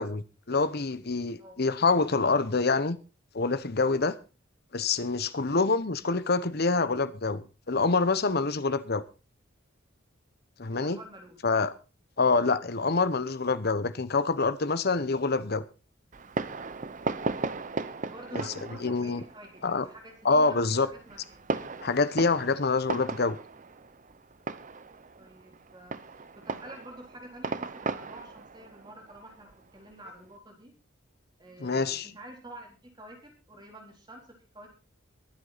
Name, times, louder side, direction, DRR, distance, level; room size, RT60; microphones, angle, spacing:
voice 1, 0.0-3.0 3.3-4.2 4.7-9.0 10.6-11.0 11.4-11.7 12.2-15.6 18.3-18.4 18.8-19.2 19.6-19.9 20.2-20.9 21.8-23.4 31.6-32.1, left 3 dB, 50° left, 0.9 m, -26 dB
voice 2, 10.7-11.5 12.2-12.4 18.0-21.4 25.2-30.7 31.4-34.8, right 1 dB, 20° right, 4.0 m, -49 dB
Fireworks, 16.1-30.3, right 3 dB, 40° right, 0.8 m, -37 dB
22.5 x 8.2 x 4.1 m
head